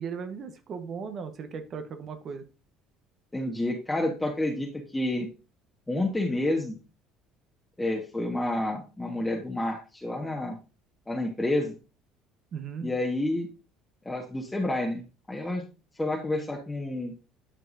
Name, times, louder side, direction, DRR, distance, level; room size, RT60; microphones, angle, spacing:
voice 1, 0.0-2.4 12.5-12.9, right 6 dB, 50° right, 8 dB, 1.1 m, -37 dB
voice 2, 3.3-5.3 5.9-6.8 7.8-10.5 11.1-11.7 12.8-13.5 14.0-15.6 16.0-17.1, left 1 dB, 10° left, 0 dB, 1.4 m, -29 dB
11.0 x 4.6 x 2.7 m, 0.32 s
hypercardioid pair, 75°, 0 cm